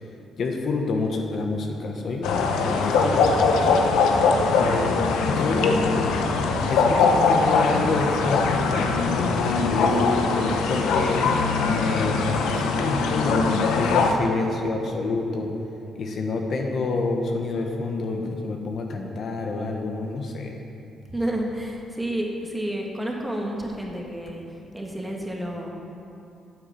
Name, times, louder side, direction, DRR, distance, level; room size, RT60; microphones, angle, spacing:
voice 1, 0.4-3.8 4.6-5.0 5.3-5.8 6.7-10.2 10.7-11.2 11.7-15.5 15.9-20.6, left 3 dB, 55° left, 2 dB, 1.2 m, -28 dB
sound 1, 2.2-14.1, left 4 dB, 90° left, 0.9 m, -21 dB
voice 2, 21.1-24.4 24.7-25.7, right 1 dB, 10° right, -1 dB, 1.8 m, -30 dB
9.3 x 7.3 x 7.5 m, 2.6 s
cardioid pair, 90°, 0 cm